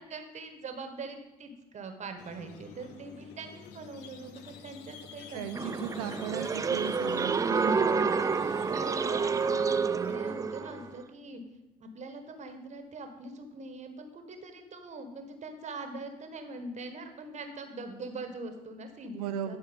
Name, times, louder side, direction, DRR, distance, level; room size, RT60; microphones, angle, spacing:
voice 1, 0.0-6.0 7.6-11.4 11.8-19.6, right 3 dB, 40° right, 6 dB, 1.3 m, -42 dB
Squeak, 2.2-10.9, left 6 dB, 60° left, 1.0 m, -50 dB
voice 2, 5.3-7.8 19.1-19.6, right 9 dB, 80° right, 8 dB, 0.8 m, -37 dB
sound 1, 5.5-10.9, right 5 dB, 15° right, 0.4 m, -29 dB
11.5 x 4.5 x 5.2 m, 0.96 s
hypercardioid pair, 60°, 19 cm